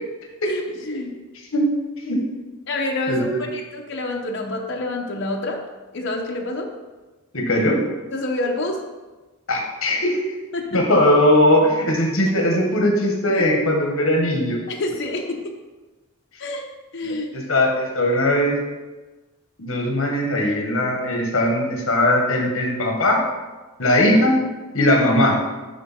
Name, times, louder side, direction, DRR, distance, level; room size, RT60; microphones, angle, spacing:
voice 1, 0.5-1.1 2.7-3.3 3.5-5.6 5.9-6.7 8.1-8.8 10.5-10.8 12.3-12.4 14.7-15.6 16.4-16.6 16.9-17.5, left 2 dB, 55° left, 1 dB, 0.8 m, -27 dB
voice 2, 3.1-3.4 7.3-7.8 9.5-10.2 10.7-14.6 17.0-18.6 19.6-23.2 23.8-24.4 24.7-25.4, left 1 dB, 75° left, 1 dB, 1.5 m, -19 dB
10.5 x 3.6 x 4.2 m, 1.2 s
head